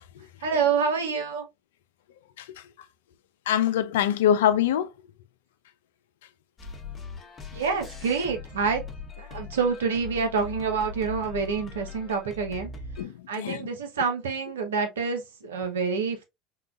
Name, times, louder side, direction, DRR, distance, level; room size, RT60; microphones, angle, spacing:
voice 1, 0.4-1.4 7.5-8.8 9.2-12.7 13.3-16.2, right 5 dB, 85° right, 0.7 m, -27 dB
voice 2, 3.5-4.9 13.0-13.7, left 10 dB, 75° left, 0.3 m, -24 dB
sound 1, 6.6-13.0, left 5 dB, 30° left, 0.9 m, -40 dB
3.8 x 2.3 x 2.3 m
hypercardioid pair, 75°, 0 cm